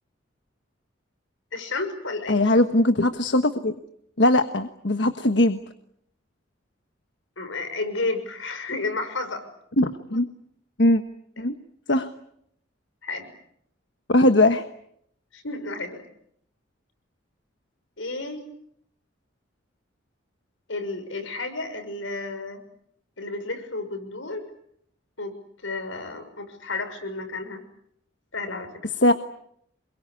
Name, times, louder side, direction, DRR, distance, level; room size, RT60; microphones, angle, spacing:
voice 1, 1.5-2.4 7.4-9.4 13.0-13.3 15.3-16.0 18.0-18.4 20.7-22.6 23.2-24.5 25.2-25.4 25.6-27.6 28.3-28.7, left 3 dB, 85° left, 8 dB, 6.3 m, -31 dB
voice 2, 2.3-3.7 4.2-5.6 9.8-10.3 10.8-11.0 11.4-11.5 11.9-12.1 14.1-14.6 29.0-29.1, left 1 dB, 65° left, 8 dB, 1.3 m, -20 dB
28.0 x 23.0 x 8.4 m, 0.72 s
head